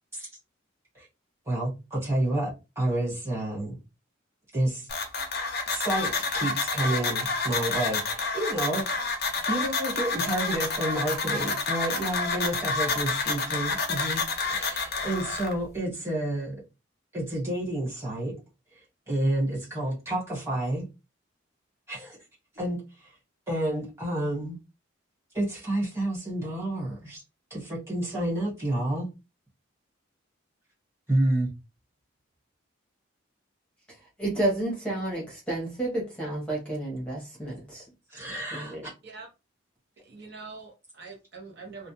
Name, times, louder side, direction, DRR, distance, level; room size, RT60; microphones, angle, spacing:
voice 1, 1.5-3.8 4.5-4.9 5.7-8.8 9.5-16.5 17.1-18.3 19.1-20.8 21.9-22.2 22.5-23.1 23.5-24.6 25.3-27.2 27.5-29.1 31.1-31.5 38.1-38.9, right 1 dB, 15° right, 1.2 m, -29 dB
sound 1, 4.9-15.5, left 4 dB, 50° left, 0.5 m, -29 dB
voice 2, 34.2-37.8 38.5-38.9, right 2 dB, 5° left, 0.8 m, -30 dB
voice 3, 40.0-41.9, right 4 dB, 55° right, 0.7 m, -44 dB
2.3 x 2.1 x 2.8 m
head